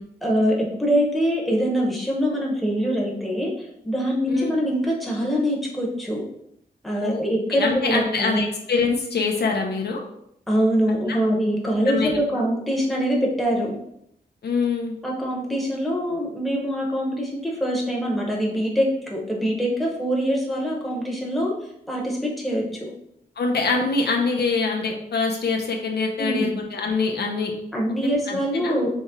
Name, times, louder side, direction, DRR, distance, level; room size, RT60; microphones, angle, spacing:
voice 1, 0.2-6.2 6.8-8.5 10.5-13.8 15.0-21.5 21.9-22.9 26.2-26.5 27.7-28.9, equal, ahead, -3 dB, 1.0 m, -24 dB
voice 2, 7.5-10.0 11.1-11.2 11.9-12.2 14.4-14.9 23.4-27.5 28.0-28.7, left 4 dB, 75° left, 1 dB, 0.8 m, -24 dB
4.2 x 3.2 x 3.7 m, 0.75 s
wide cardioid pair, 140°, 17 cm